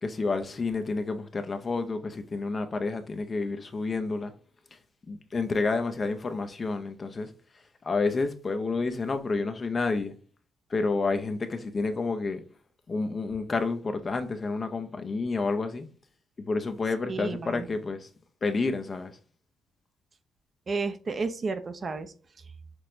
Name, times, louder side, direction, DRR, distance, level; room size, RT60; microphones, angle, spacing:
voice 1, 0.0-4.3 5.1-7.3 7.8-10.1 10.7-12.4 12.9-15.9 16.5-18.1 18.4-19.1, left 3 dB, 35° left, 0.5 m, -29 dB
voice 2, 17.1-17.7 20.7-22.1, right 4 dB, 40° right, 0.5 m, -32 dB
5.9 x 2.1 x 2.6 m
cardioid pair, 90°, 0 cm